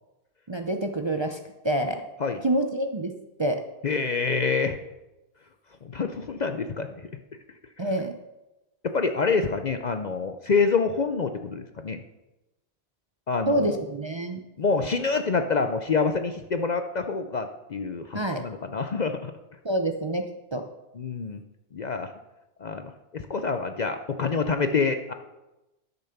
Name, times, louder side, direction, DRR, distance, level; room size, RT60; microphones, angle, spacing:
voice 1, 0.5-1.4 1.6-2.0 2.4-3.1 3.4-3.6 7.8-8.1 13.5-14.4 18.1-18.4 19.6-20.2 20.5-20.6, right 1 dB, 30° right, 4 dB, 0.6 m, -26 dB
voice 2, 3.8-4.8 5.8-6.9 8.8-12.0 13.3-13.8 14.6-19.3 21.0-21.4 21.7-22.1 22.6-25.1, left 4 dB, 50° left, 8 dB, 0.6 m, -27 dB
12.0 x 6.7 x 5.8 m, 1.0 s
omnidirectional pair, 1.2 m